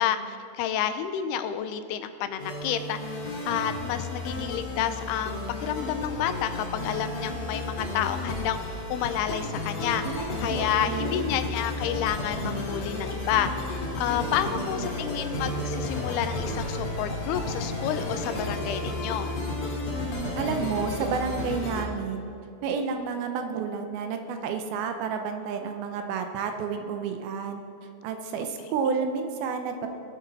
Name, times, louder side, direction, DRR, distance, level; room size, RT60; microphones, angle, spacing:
voice 1, 0.0-19.3, left 10 dB, 90° left, 10 dB, 2.7 m, -30 dB
sound 1, 2.4-21.8, left 2 dB, 60° left, 3.4 m, -32 dB
voice 2, 10.0-11.3 14.5-14.9 20.0-22.3 22.6-27.6 28.0-29.9, right 6 dB, 80° right, 5 dB, 2.6 m, -31 dB
19.0 x 7.1 x 4.1 m, 2.7 s
omnidirectional pair, 4.5 m